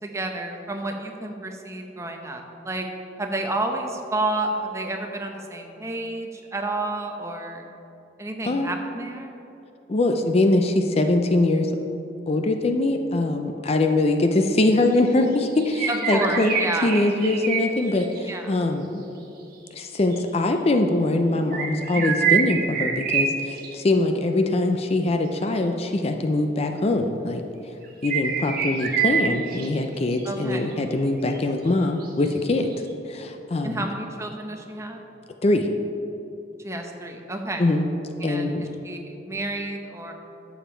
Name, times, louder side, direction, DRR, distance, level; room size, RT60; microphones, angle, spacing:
voice 1, 0.0-2.9 3.2-7.7 8.2-9.4 15.9-17.0 18.3-18.5 21.9-22.2 30.2-30.7 33.6-35.0 36.6-37.6 38.2-40.1, right 2 dB, 15° right, 3 dB, 0.8 m, -30 dB
voice 2, 8.4-8.8 9.9-11.7 12.3-16.6 16.8-19.0 19.7-27.4 28.0-32.7 33.1-33.8 35.4-35.7 37.6-37.8 38.2-38.7, left 2 dB, 35° left, 6 dB, 0.5 m, -22 dB
sound 1, 14.9-15.1 15.4-18.3 20.1-20.2 21.5-23.7 27.8-29.7 30.1-30.3 30.7-30.8 31.0-31.1 31.4-31.5 32.0-32.7, right 7 dB, 55° right, 1.2 m, -26 dB
11.5 x 7.2 x 4.4 m, 3.0 s
head